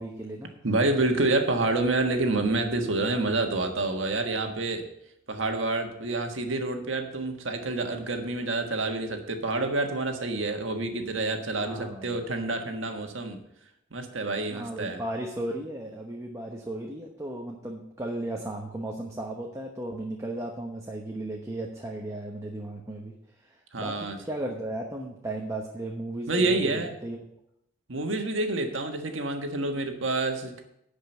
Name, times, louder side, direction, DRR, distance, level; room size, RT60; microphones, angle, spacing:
voice 1, 0.0-0.5 11.6-12.3 14.5-27.2, right 1 dB, 15° right, 0 dB, 1.0 m, -35 dB
voice 2, 0.6-4.8 5.3-13.4 13.9-15.0 23.7-24.2 26.3-26.9 27.9-30.6, right 2 dB, 85° right, 5 dB, 1.5 m, -28 dB
10.5 x 5.2 x 7.9 m, 0.79 s
head